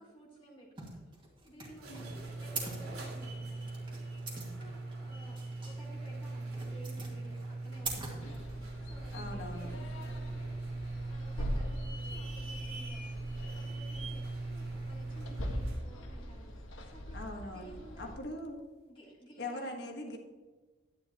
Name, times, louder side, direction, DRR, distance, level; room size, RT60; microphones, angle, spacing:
voice 1, 0.0-17.2 17.5-18.1 18.9-19.9, right 1 dB, 25° left, -4 dB, 1.9 m, -56 dB
sound 1, 0.8-8.9, right 3 dB, 25° right, 2.1 m, -44 dB
sound 2, 1.6-15.9, right 2 dB, 90° right, 3.4 m, -41 dB
sound 3, 8.2-18.2, equal, 70° left, 1.3 m, -42 dB
voice 2, 9.1-9.8 17.1-18.7 19.4-20.2, left 1 dB, 50° left, 2 dB, 1.5 m, -41 dB
11.0 x 10.0 x 3.0 m, 1.3 s
head